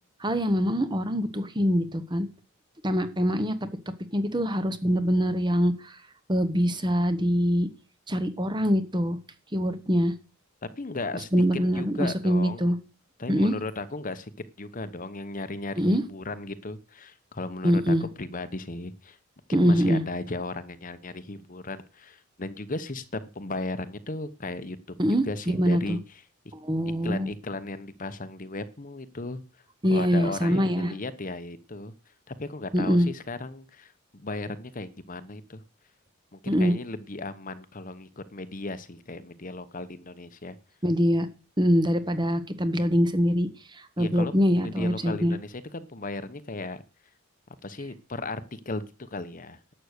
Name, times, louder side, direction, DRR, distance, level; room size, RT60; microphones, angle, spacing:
voice 1, 0.2-2.3 2.8-3.6 4.1-5.9 6.3-7.7 8.1-9.2 9.5-10.1 11.3-12.8 13.3-13.5 15.8-16.0 17.6-18.0 19.5-20.0 25.0-26.0 26.6-27.3 29.8-31.0 32.7-33.1 36.5-36.7 40.8-41.3 41.6-43.5 44.0-45.3, equal, 20° right, 11 dB, 1.1 m, -24 dB
voice 2, 10.6-11.4 11.7-12.7 13.2-14.3 14.6-19.2 19.5-24.8 25.1-26.2 27.0-29.4 29.9-35.6 36.3-40.6 44.0-46.8 47.6-49.7, left 2 dB, 40° left, 12 dB, 1.0 m, -36 dB
11.5 x 8.0 x 6.6 m, 0.34 s
head